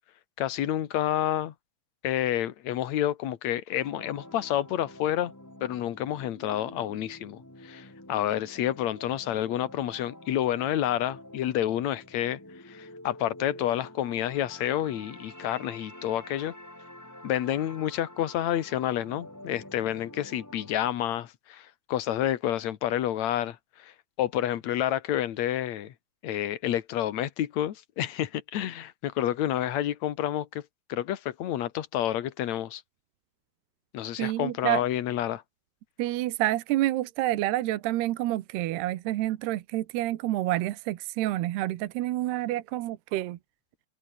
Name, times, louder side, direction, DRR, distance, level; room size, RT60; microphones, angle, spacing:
voice 1, 0.4-1.5 2.0-5.3 5.6-12.4 12.7-16.5 17.2-23.6 23.8-23.9 24.2-25.9 26.2-30.6 30.9-32.8 33.9-35.4, left 12 dB, 60° left, 2.0 m, -29 dB
sound 1, 3.7-20.9, left 1 dB, 5° left, 1.9 m, -48 dB
voice 2, 34.2-34.8 36.0-43.4, right 15 dB, 75° right, 3.0 m, -28 dB
omnidirectional pair, 4.9 m